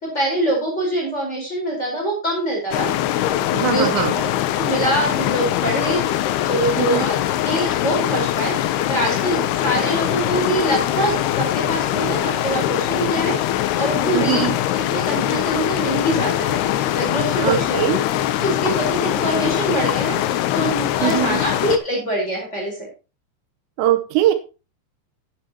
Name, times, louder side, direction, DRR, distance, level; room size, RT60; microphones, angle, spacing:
voice 1, 0.0-2.9 3.6-3.9 4.1-4.2 4.5-7.1 7.4-8.5 8.9-14.5 14.7-17.8 18.1-22.8, right 1 dB, 15° left, -1 dB, 4.2 m, -24 dB
sound 1, 2.7-21.8, left 12 dB, 80° left, 2.5 m, -22 dB
voice 2, 3.5-4.1 6.8-7.1 14.1-14.6 17.4-18.0 21.0-21.4 23.8-24.3, right 12 dB, 80° right, 8 dB, 3.0 m, -21 dB
11.5 x 10.0 x 2.9 m, 0.32 s
omnidirectional pair, 5.3 m